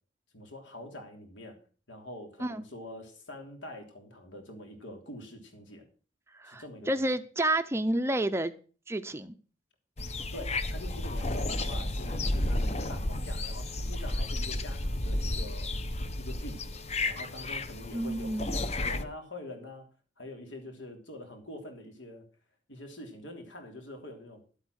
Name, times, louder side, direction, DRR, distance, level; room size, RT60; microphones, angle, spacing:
voice 1, 0.3-1.6 1.9-5.8 6.4-7.0 10.3-15.7 16.2-16.7 17.1-19.9 20.2-22.2 22.7-24.4, left 1 dB, 80° left, 4 dB, 3.3 m, -45 dB
voice 2, 6.3-8.5 8.9-9.4 17.9-18.5, right 1 dB, 15° right, 10 dB, 0.5 m, -30 dB
sound 1, 10.0-19.0, left 1 dB, 35° left, 0.8 m, -32 dB
12.0 x 8.2 x 6.3 m, 0.39 s
head